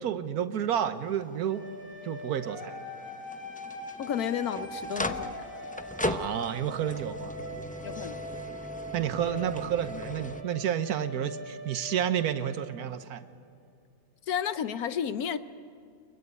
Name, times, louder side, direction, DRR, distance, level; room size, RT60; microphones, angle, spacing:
voice 1, 0.0-1.6 2.0-2.8 6.0-7.4 8.9-13.2, right 9 dB, 90° right, 11 dB, 1.4 m, -30 dB
sound 1, 0.7-10.4, left 1 dB, 10° left, 0.4 m, -39 dB
sound 2, 1.4-13.2, equal, 30° left, 6.3 m, -42 dB
voice 2, 4.0-5.5 7.8-8.2 14.3-15.4, left 8 dB, 80° left, 12 dB, 1.3 m, -32 dB
24.0 x 22.0 x 9.5 m, 2.4 s
omnidirectional pair, 1.6 m